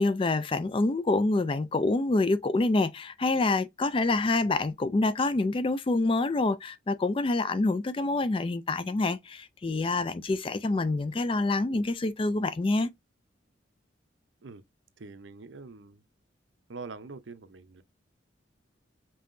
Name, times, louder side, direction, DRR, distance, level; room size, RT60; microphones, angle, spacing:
voice 1, 0.0-12.9, left 2 dB, 25° left, 0.3 m, -26 dB
voice 2, 15.0-16.0 16.7-17.8, right 4 dB, 75° right, 0.6 m, -44 dB
5.4 x 2.8 x 2.6 m
head